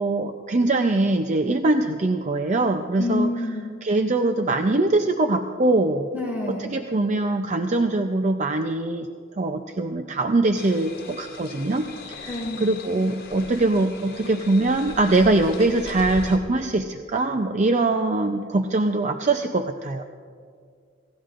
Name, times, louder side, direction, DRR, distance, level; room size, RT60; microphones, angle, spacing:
voice 1, 0.0-3.3 3.8-6.1 6.5-9.1 9.4-20.0, right 2 dB, 40° right, 5 dB, 0.5 m, -22 dB
voice 2, 3.0-3.7 6.1-6.7 12.3-12.7, left 2 dB, 10° right, -4 dB, 3.8 m, -27 dB
sound 1, 10.5-16.4, left 2 dB, 50° left, 2.2 m, -39 dB
27.5 x 16.5 x 2.5 m, 2.1 s
head